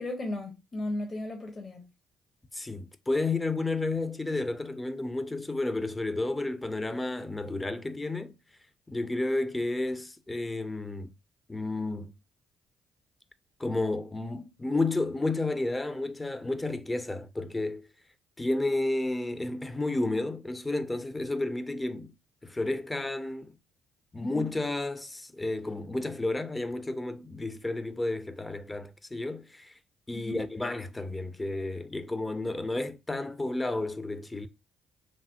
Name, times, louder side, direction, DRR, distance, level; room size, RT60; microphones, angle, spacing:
voice 1, 0.0-1.8 24.2-24.5 30.1-30.4, left 1 dB, 40° left, 0.9 m, -35 dB
voice 2, 2.5-8.3 8.9-11.1 11.5-12.1 13.6-17.9 18.4-22.1 22.4-23.5 24.1-29.8 30.1-34.5, left 2 dB, 20° left, 0.5 m, -31 dB
3.2 x 2.0 x 2.8 m
hypercardioid pair, 55°, 0 cm